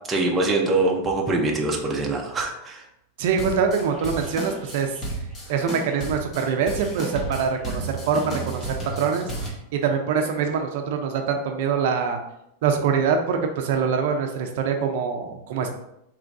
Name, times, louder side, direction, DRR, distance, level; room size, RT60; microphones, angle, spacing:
voice 1, 0.1-2.8, right 2 dB, 15° right, -1 dB, 0.6 m, -23 dB
voice 2, 3.2-5.0 5.5-9.3 9.7-12.2 12.6-15.7, right 6 dB, 60° right, 4 dB, 0.5 m, -24 dB
sound 1, 3.3-9.5, right 2 dB, 15° left, 0.9 m, -33 dB
4.6 x 3.0 x 2.6 m, 0.81 s
supercardioid pair, 155°, 0 cm